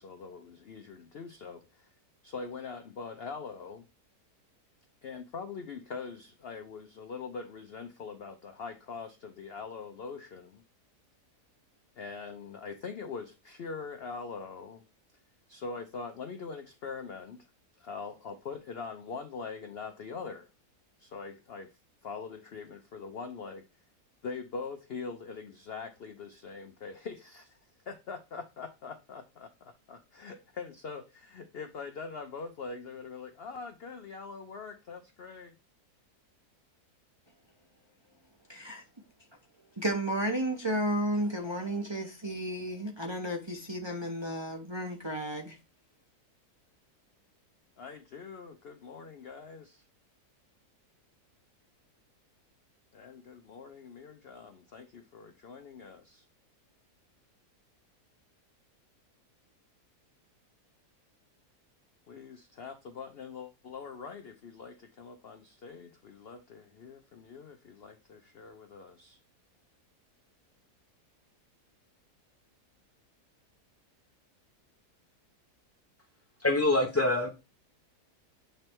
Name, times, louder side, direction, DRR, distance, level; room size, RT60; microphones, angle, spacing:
voice 1, 0.0-1.6 2.2-3.8 5.0-10.6 12.0-14.8 15.5-17.4 17.8-20.5 21.0-21.7 22.0-23.6 24.2-27.5 27.9-35.6 47.8-49.8 52.9-56.2 62.1-69.2, left 5 dB, 60° left, 0.6 m, -43 dB
voice 2, 38.5-38.8 39.8-45.6, right 1 dB, 25° right, 0.7 m, -32 dB
voice 3, 76.4-77.3, left 2 dB, 20° left, 0.4 m, -25 dB
7.7 x 3.3 x 4.5 m
omnidirectional pair, 1.7 m